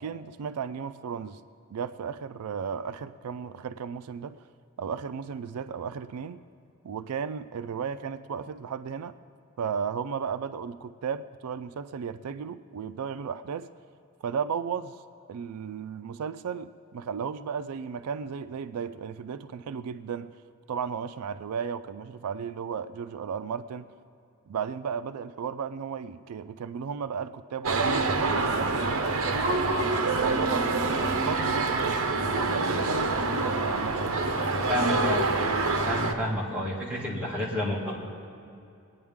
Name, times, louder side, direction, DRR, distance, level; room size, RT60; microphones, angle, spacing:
voice 1, 0.0-1.4 1.7-4.4 4.8-6.4 6.8-9.1 9.6-13.7 14.2-15.0 15.3-20.3 20.7-23.9 24.5-29.6 30.1-34.2, right 6 dB, 85° right, 12 dB, 0.4 m, -34 dB
sound 1, 27.6-36.1, right 3 dB, 65° right, 0.9 m, -26 dB
voice 2, 34.6-35.3 35.8-37.9, left 1 dB, 5° right, -6 dB, 2.2 m, -30 dB
22.0 x 9.4 x 3.6 m, 2.5 s
head